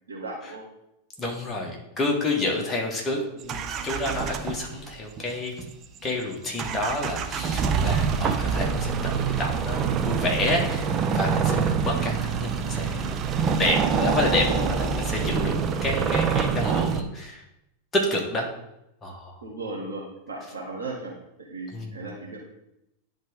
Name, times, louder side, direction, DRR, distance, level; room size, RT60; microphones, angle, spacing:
voice 1, 0.1-0.6 2.5-2.6 14.3-14.7 19.4-21.1 21.5-22.4, right 2 dB, 75° right, -3 dB, 1.3 m, -36 dB
voice 2, 1.2-5.6 6.0-13.2 13.6-15.5 15.8-17.4 17.9-18.5 19.0-19.4 21.7-22.0, left 2 dB, 15° left, -1 dB, 1.7 m, -29 dB
sound 1, 3.4-4.9 5.2-5.3 5.6-6.1 6.6-17.0, right 6 dB, 30° right, 0.5 m, -26 dB
10.5 x 3.6 x 3.7 m, 0.86 s
figure-of-eight pair, 90°, 0 cm